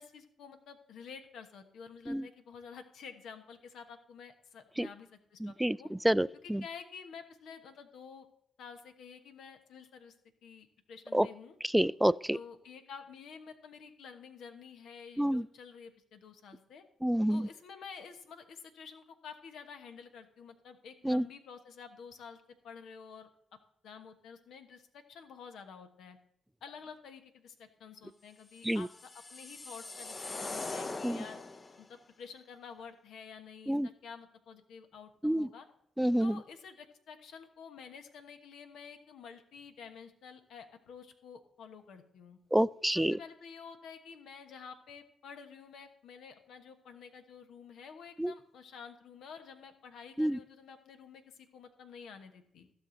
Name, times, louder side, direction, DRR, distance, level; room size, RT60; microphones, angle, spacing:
voice 1, 0.0-5.9 6.4-8.3 8.6-10.1 10.4-11.6 12.3-16.8 17.3-23.3 23.8-26.2 26.6-31.4 31.8-35.7 36.2-42.4 42.9-52.7, left 6 dB, 75° left, 7 dB, 1.2 m, -50 dB
voice 2, 5.4-5.8 6.0-6.6 11.1-11.3 11.7-12.4 15.2-15.5 17.0-17.5 21.0-21.2 28.6-28.9 31.0-31.2 33.7-33.9 35.2-35.5 36.0-36.4 42.5-43.2 48.2-48.3 50.2-50.4, right 1 dB, 5° right, 20 dB, 0.3 m, -28 dB
sound 1, 28.6-31.8, left 3 dB, 35° left, 0.8 m, -41 dB
15.5 x 6.2 x 4.0 m, 0.72 s
supercardioid pair, 55°, 0 cm